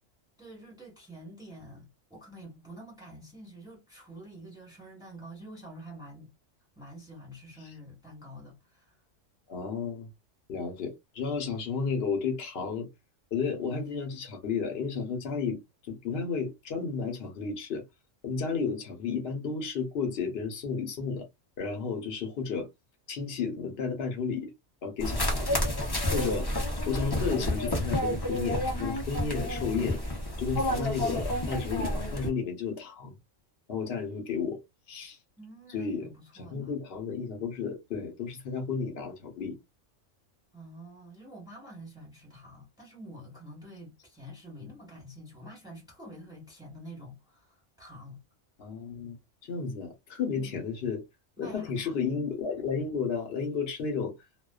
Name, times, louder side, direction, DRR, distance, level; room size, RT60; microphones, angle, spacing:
voice 1, 0.4-6.3 6.7-9.0 35.4-36.7 40.5-48.2 50.3-50.6 51.4-52.1, equal, 5° right, 1.2 m, -47 dB
voice 2, 9.5-10.1 10.5-12.9 13.3-15.6 15.9-17.8 18.2-21.3 21.6-22.7 23.1-24.5 24.8-25.5 26.0-26.5 26.9-30.0 30.4-33.1 33.7-34.6 34.9-35.2 35.7-36.1 36.3-39.6 48.6-49.2 49.4-51.0 51.4-54.1, left 5 dB, 55° left, 1.0 m, -32 dB
sound 1, 25.0-32.3, left 1 dB, 25° left, 0.6 m, -30 dB
2.3 x 2.3 x 2.3 m
omnidirectional pair, 1.3 m